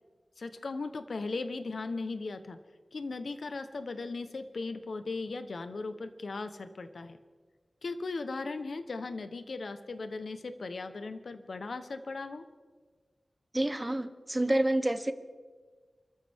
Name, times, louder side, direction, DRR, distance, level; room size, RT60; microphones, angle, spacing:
voice 1, 0.4-2.6 2.9-7.2 7.8-12.5, left 3 dB, 70° left, 9 dB, 0.9 m, -37 dB
voice 2, 13.5-15.1, right 1 dB, 20° right, 10 dB, 0.9 m, -28 dB
29.5 x 13.5 x 3.6 m, 1.5 s
wide cardioid pair, 100°, 0 cm